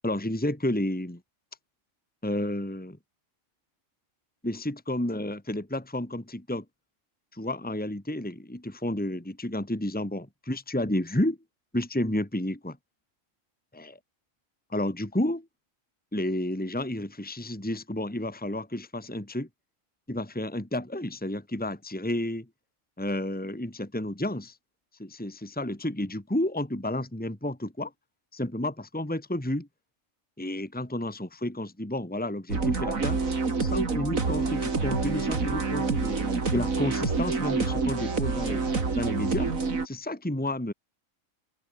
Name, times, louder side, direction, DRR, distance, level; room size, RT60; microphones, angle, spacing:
voice 1, 0.0-1.2 2.2-3.0 4.4-6.6 7.3-11.4 11.7-12.8 13.7-13.9 14.7-15.5 16.1-19.5 20.1-22.5 23.0-24.6 25.0-27.9 28.3-29.7 30.4-33.2 33.6-36.2 36.5-38.6 39.0-39.5 39.8-40.7, left 1 dB, 5° left, 2.1 m, -31 dB
sound 1, 32.5-39.9, right 4 dB, 85° right, 3.1 m, -27 dB
open air
omnidirectional pair, 1.4 m